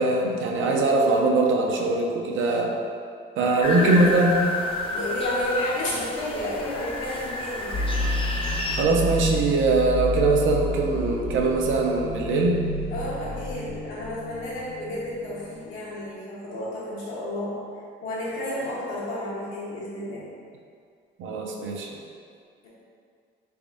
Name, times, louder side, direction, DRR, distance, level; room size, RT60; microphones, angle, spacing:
voice 1, 0.0-2.7 3.4-4.4 8.7-12.7 21.2-22.0, right 2 dB, 75° right, 0 dB, 0.5 m, -22 dB
voice 2, 3.6-4.1 4.8-7.9 12.9-17.6 18.0-20.2 22.6-22.7, left 1 dB, 90° left, -7 dB, 1.1 m, -31 dB
sound 1, 3.6-8.8, left 1 dB, 25° left, 0.4 m, -30 dB
sound 2, 7.7-15.7, left 1 dB, 55° left, 0.8 m, -30 dB
3.4 x 3.4 x 2.5 m, 2.2 s
cardioid pair, 90°, 20 cm